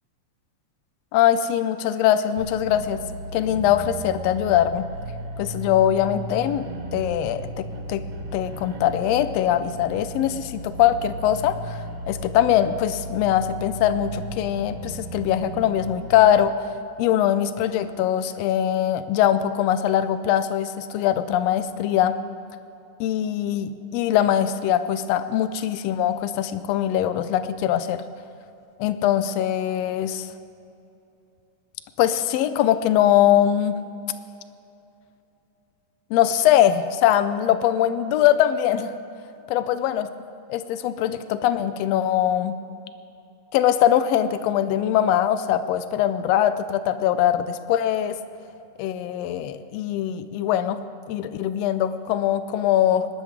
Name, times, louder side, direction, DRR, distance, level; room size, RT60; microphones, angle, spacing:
voice 1, 1.1-3.0 3.3-4.8 5.4-6.6 6.9-8.0 8.3-16.7 17.0-22.2 23.0-28.0 28.8-30.3 32.0-33.8 36.1-38.9 39.5-40.1 40.5-42.5 43.5-48.2 48.8-50.8 51.1-53.1, left 11 dB, 85° left, 12 dB, 1.4 m, -22 dB
sound 1, 2.4-16.4, right 1 dB, 65° right, 1.5 m, -35 dB
20.0 x 12.5 x 3.6 m, 2.7 s
omnidirectional pair, 3.4 m